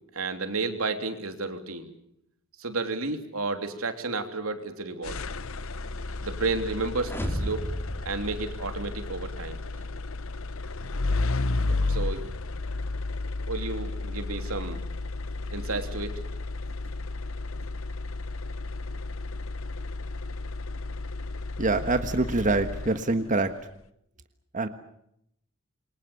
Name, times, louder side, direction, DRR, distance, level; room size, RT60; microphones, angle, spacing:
voice 1, 0.1-1.9 2.6-5.2 6.2-7.7 8.0-9.8 11.9-12.2 13.5-14.9 15.5-16.1, right 3 dB, 85° right, 7 dB, 3.1 m, -32 dB
sound 1, 5.0-23.3, left 3 dB, 70° left, 0.9 m, -33 dB
sound 2, 7.0-9.2, equal, 10° left, 3.0 m, -34 dB
voice 2, 21.6-23.5 24.5-24.7, right 3 dB, 40° right, 8 dB, 1.4 m, -25 dB
27.5 x 23.5 x 7.1 m, 0.76 s
head